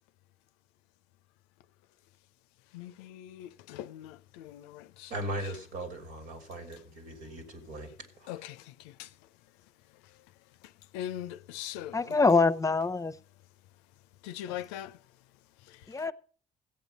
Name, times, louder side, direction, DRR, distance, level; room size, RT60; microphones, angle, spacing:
voice 1, 2.7-5.1 8.3-9.1 10.6-12.2 14.2-15.0 15.7-15.9, left 12 dB, 90° left, 0.5 m, -41 dB
voice 2, 5.1-8.5, right 1 dB, 80° right, 2.7 m, -39 dB
voice 3, 11.9-13.1 15.9-16.1, left 3 dB, 20° left, 0.8 m, -24 dB
14.5 x 8.3 x 5.2 m
hypercardioid pair, 55°, 14 cm